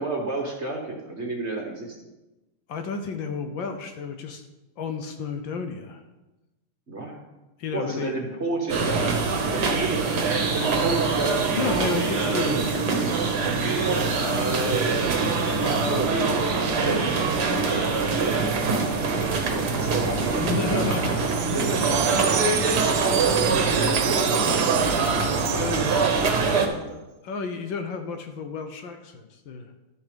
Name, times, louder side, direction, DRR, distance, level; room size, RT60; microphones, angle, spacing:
voice 1, 0.0-2.0 6.9-7.2 7.7-12.6 14.2-15.2 15.7-16.4 16.8-20.6 21.5-25.8 26.2-27.0, right 2 dB, 35° right, 1 dB, 1.4 m, -31 dB
voice 2, 2.7-4.4 4.8-6.0 7.6-8.1 11.5-14.3 14.8-15.0 15.6-15.9 16.8-17.1 20.3-21.3 21.9-22.0 22.4-22.5 25.6-26.0 27.2-29.7, left 5 dB, 65° left, 6 dB, 1.5 m, -32 dB
sound 1, 8.7-26.7, right 4 dB, 50° right, 1.6 m, -24 dB
Wind chime, 21.2-26.5, right 11 dB, 75° right, 1.0 m, -31 dB
12.5 x 7.0 x 5.1 m, 1.0 s
omnidirectional pair, 2.4 m